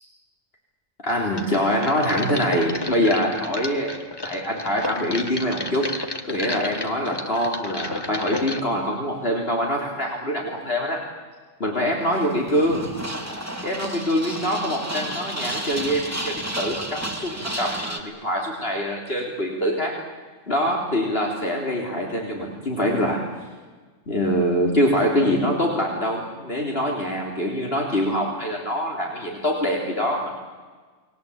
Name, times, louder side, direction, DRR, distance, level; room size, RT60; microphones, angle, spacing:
voice 1, 1.0-3.9 4.2-5.9 6.3-11.0 11.6-12.9 13.6-20.0 20.5-23.2 24.1-30.3, equal, 55° left, -1 dB, 3.8 m, -24 dB
sound 1, 1.4-8.6, left 2 dB, 20° left, 1.5 m, -32 dB
sound 2, 12.0-18.0, right 1 dB, 10° right, 2.8 m, -32 dB
30.0 x 21.5 x 8.7 m, 1.4 s
omnidirectional pair, 1.2 m